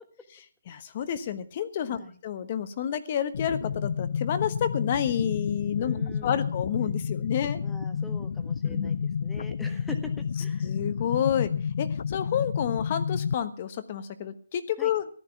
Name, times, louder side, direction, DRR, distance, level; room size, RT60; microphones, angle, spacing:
voice 1, 0.7-7.6 8.6-9.0 10.6-11.5 11.8-15.1, left 9 dB, 30° left, 12 dB, 1.2 m, -29 dB
sound 1, 3.3-13.3, left 6 dB, 55° left, 0.6 m, -30 dB
voice 2, 5.8-6.5 7.6-10.7 14.8-14.9, left 2 dB, 5° left, 6 dB, 1.4 m, -43 dB
14.5 x 11.5 x 5.9 m, 0.43 s
hypercardioid pair, 170°, 0 cm